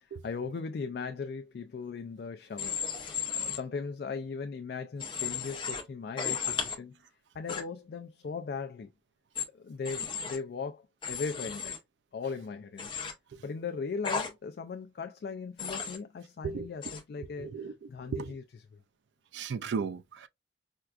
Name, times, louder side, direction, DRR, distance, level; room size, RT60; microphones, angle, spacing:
voice 1, 0.2-2.8 3.3-7.0 7.3-8.9 9.5-11.8 12.1-12.9 13.4-17.5 17.9-18.6, left 5 dB, 60° left, 0.3 m, -38 dB
Human voice / Train, 2.6-3.6 5.0-5.8 6.2-6.8 7.5-7.6 9.4-9.5 9.9-10.4 11.0-11.8 12.8-13.1 14.0-14.3 15.6-16.0 16.8-17.0, left 6 dB, 30° left, 0.7 m, -34 dB
voice 2, 17.4-18.3 19.3-20.3, right 5 dB, 85° right, 0.3 m, -35 dB
4.5 x 2.3 x 2.4 m
head